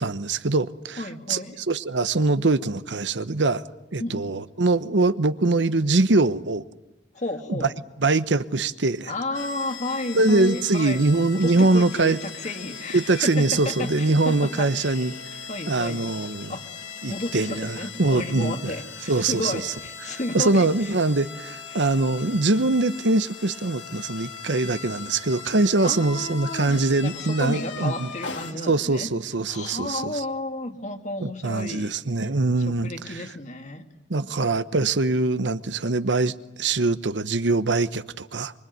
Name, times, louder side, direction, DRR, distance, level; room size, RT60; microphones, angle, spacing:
voice 1, 0.0-1.0 1.3-3.6 3.9-6.6 7.5-7.7 8.0-9.1 10.1-12.2 12.9-15.1 15.7-16.5 17.0-18.7 19.1-19.7 20.3-28.1 28.7-30.2 31.2-33.2 34.1-38.5, right 3 dB, 75° right, 1.0 m, -23 dB
voice 2, 1.0-1.6 4.0-4.2 7.1-7.7 9.0-11.0 11.3-15.2 15.5-16.1 16.5-16.6 17.1-20.9 21.7-21.9 25.8-29.1 29.5-31.9 32.6-33.9, left 2 dB, 40° left, 2.2 m, -32 dB
sound 1, 9.3-28.5, left 5 dB, 80° left, 2.9 m, -39 dB
25.0 x 25.0 x 9.4 m
head